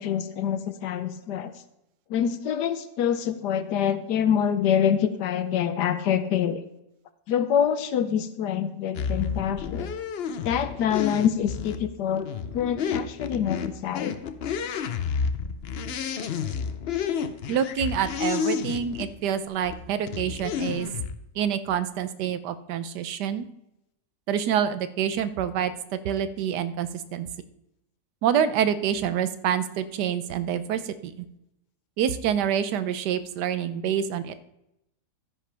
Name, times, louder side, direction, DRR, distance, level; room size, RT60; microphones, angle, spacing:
voice 1, 0.0-1.5 2.1-6.6 7.3-9.9 10.4-12.3 12.5-14.2, left 8 dB, 85° left, 11 dB, 1.4 m, -26 dB
sound 1, 8.9-19.1 19.6-21.1, left 6 dB, 65° left, 0.6 m, -31 dB
voice 2, 17.5-20.9 21.3-23.5 24.3-27.3 28.2-31.3 32.0-34.3, right 9 dB, 85° right, 13 dB, 1.3 m, -27 dB
12.5 x 10.0 x 3.4 m, 0.86 s
omnidirectional pair, 1.8 m